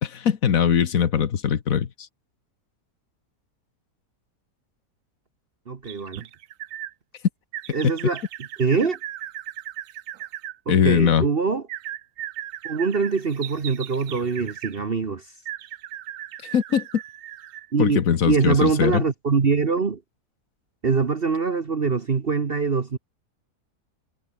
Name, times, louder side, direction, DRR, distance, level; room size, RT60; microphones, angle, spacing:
voice 1, 0.0-1.9 10.7-11.2 16.5-16.9 17.8-19.0, left 8 dB, 65° left, 1.6 m, -21 dB
voice 2, 5.7-6.2 7.7-8.2 8.6-9.0 10.7-11.6 12.6-15.2 17.7-20.0 20.8-23.0, right 5 dB, 40° right, 1.4 m, -23 dB
sound 1, 5.8-6.9 7.5-10.6 11.7-14.8 15.5-17.7 18.2-18.3, right 12 dB, 65° right, 1.0 m, -37 dB
omnidirectional pair, 1.6 m